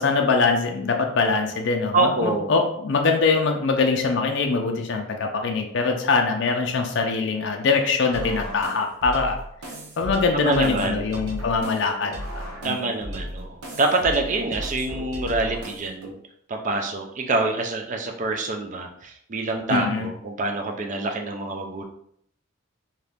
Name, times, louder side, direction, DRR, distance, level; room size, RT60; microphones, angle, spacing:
voice 1, 0.0-9.4 10.0-12.8 19.7-20.1, left 4 dB, 55° left, 3 dB, 0.4 m, -23 dB
voice 2, 1.9-2.5 10.3-11.0 12.6-16.2 16.5-21.8, right 2 dB, 35° right, 3 dB, 0.4 m, -26 dB
sound 1, 8.1-16.1, equal, 85° right, 0.8 m, -35 dB
2.8 x 2.5 x 3.4 m, 0.69 s
head